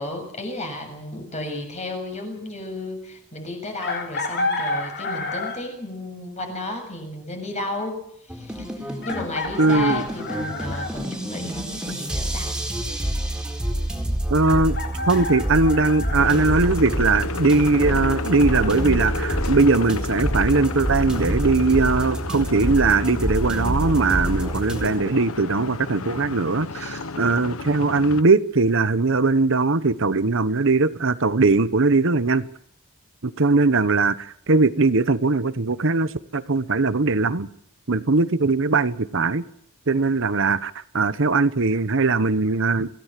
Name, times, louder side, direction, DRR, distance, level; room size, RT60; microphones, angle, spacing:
voice 1, 0.0-8.0 8.3-12.6 26.7-27.0, left 2 dB, 35° left, 7.1 m, -33 dB
Chicken rooster, 3.8-5.8 7.4-7.5 9.0-10.9 14.4-16.3, left 2 dB, 55° left, 3.8 m, -29 dB
sound 1, 8.3-24.9, right 1 dB, 5° right, 4.3 m, -27 dB
voice 2, 9.6-10.0 14.3-14.8 15.1-32.5 33.2-37.5 37.9-39.4 39.9-42.9, right 3 dB, 65° right, 1.0 m, -20 dB
sound 2, 16.2-28.2, left 3 dB, 80° left, 1.2 m, -32 dB
26.5 x 16.5 x 7.6 m
head